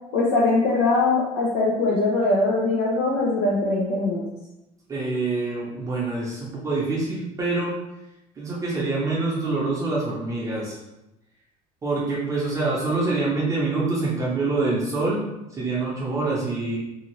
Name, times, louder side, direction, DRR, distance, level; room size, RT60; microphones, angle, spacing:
voice 1, 0.1-4.2, left 2 dB, 80° left, -5 dB, 0.6 m, -21 dB
voice 2, 4.9-7.7 8.4-10.8 11.8-15.2 15.5-16.8, right 3 dB, 25° right, -6 dB, 0.6 m, -25 dB
2.7 x 2.4 x 3.0 m, 0.93 s
cardioid pair, 140°, 13 cm